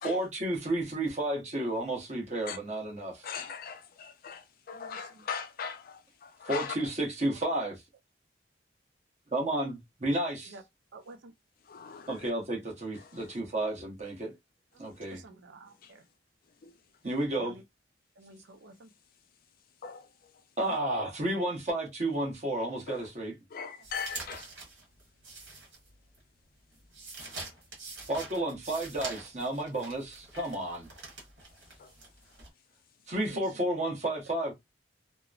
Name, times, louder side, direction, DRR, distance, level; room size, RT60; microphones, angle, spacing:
voice 1, 0.0-3.3 6.5-7.8 9.3-10.5 12.1-14.3 14.8-15.2 17.0-17.6 20.6-23.3 28.1-30.9 33.1-34.5, right 1 dB, 40° right, 0.9 m, -32 dB
voice 2, 3.2-6.9 11.6-12.3 12.9-13.4 14.9-15.0 15.8-15.9 16.6-16.7 19.8-20.8 22.9-23.1 23.5-24.5 27.2-27.4 30.3-30.5 31.8-31.9, left 6 dB, 50° left, 0.4 m, -41 dB
voice 3, 4.7-5.2 10.5-10.6 10.9-11.3 14.8-16.0 17.4-17.6 18.2-18.9 33.3-33.6, right 2 dB, 90° right, 0.5 m, -51 dB
sound 1, 23.8-26.2 26.5-32.5, right 3 dB, 70° right, 1.3 m, -45 dB
2.9 x 2.0 x 2.4 m
head